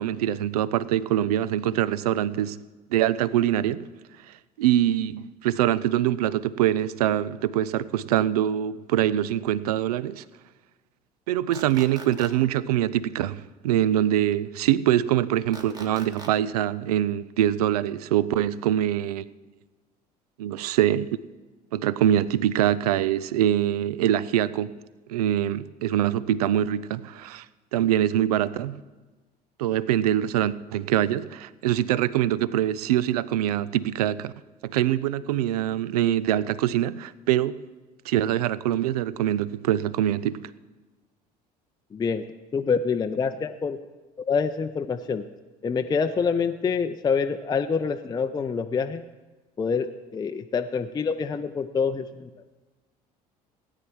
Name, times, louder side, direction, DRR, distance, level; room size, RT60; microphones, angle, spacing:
voice 1, 0.0-2.6 2.9-3.9 4.6-10.2 11.3-19.3 20.4-21.1 21.7-24.7 25.1-27.5 27.7-28.8 29.6-34.3 34.6-37.6 38.1-40.4, right 12 dB, 70° right, 0.5 m, -24 dB
sound 1, 11.5-12.3 15.5-16.3, right 2 dB, 20° right, 1.7 m, -41 dB
voice 2, 41.9-42.2 42.5-43.8 44.2-45.3 45.6-49.0 49.6-52.3, left 5 dB, 20° left, 0.5 m, -26 dB
16.5 x 9.7 x 4.6 m
figure-of-eight pair, 60°, 21 cm